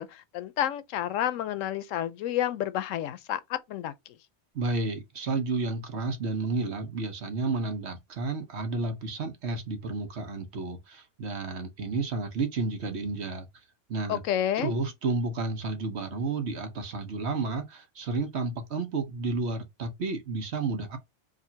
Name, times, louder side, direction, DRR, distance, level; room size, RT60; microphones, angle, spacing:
voice 1, 0.0-3.9 14.1-14.7, left 11 dB, 90° left, 1.0 m, -30 dB
voice 2, 4.5-13.5 13.9-14.2 14.6-21.0, right 3 dB, 60° right, 1.2 m, -31 dB
5.1 x 2.6 x 2.7 m
omnidirectional pair, 1.3 m